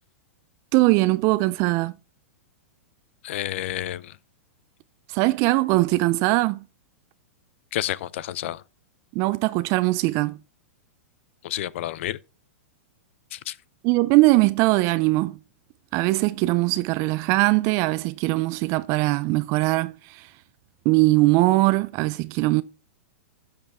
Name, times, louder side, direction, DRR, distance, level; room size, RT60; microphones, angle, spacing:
voice 1, 0.7-1.9 5.1-6.6 9.1-10.4 13.8-15.4 15.9-20.3 20.9-22.6, right 21 dB, 40° right, 0.4 m, -21 dB
voice 2, 3.2-4.1 7.7-8.6 11.4-12.2 13.3-13.5, left 13 dB, 60° left, 0.6 m, -30 dB
12.0 x 6.9 x 3.5 m
hypercardioid pair, 115°, 7 cm